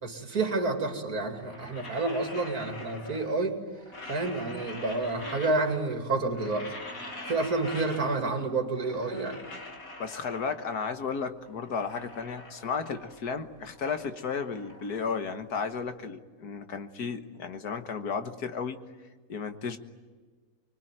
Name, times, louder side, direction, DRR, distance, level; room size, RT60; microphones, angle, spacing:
voice 1, 0.0-3.6 4.1-6.7 7.3-9.4, right 3 dB, 65° right, 3 dB, 3.2 m, -29 dB
sound 1, 1.3-3.5 3.7-5.9 6.2-8.5 8.7-10.8 11.3-13.3 13.6-15.8, left 2 dB, 60° left, 3.3 m, -44 dB
voice 2, 10.0-18.8 19.3-19.8, left 5 dB, 80° left, 8 dB, 1.9 m, -33 dB
25.5 x 23.0 x 9.2 m, 1.4 s
omnidirectional pair, 1.7 m